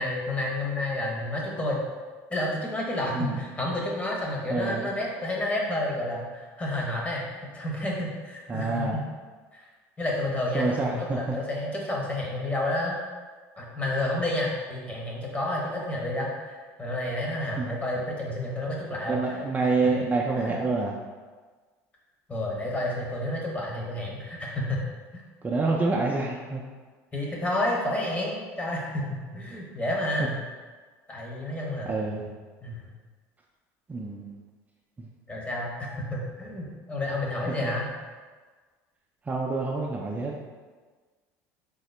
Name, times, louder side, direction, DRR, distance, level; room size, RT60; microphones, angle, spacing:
voice 1, 0.0-1.9 2.3-9.0 9.5-9.6 10.0-12.9 13.6-19.3 19.6-20.0 20.4-20.6 22.3-24.8 25.1-25.2 27.1-30.4 31.1-32.1 32.6-32.9 35.3-37.9, left 1 dB, 15° left, -2 dB, 0.9 m, -30 dB
voice 2, 4.5-4.9 8.5-9.0 10.5-11.4 17.6-17.7 19.1-20.9 25.4-26.6 31.9-32.3 33.9-34.4 35.0-35.1 39.3-40.4, right 3 dB, 20° right, -3 dB, 0.4 m, -27 dB
3.6 x 2.0 x 3.2 m, 1.4 s
supercardioid pair, 95°, 8 cm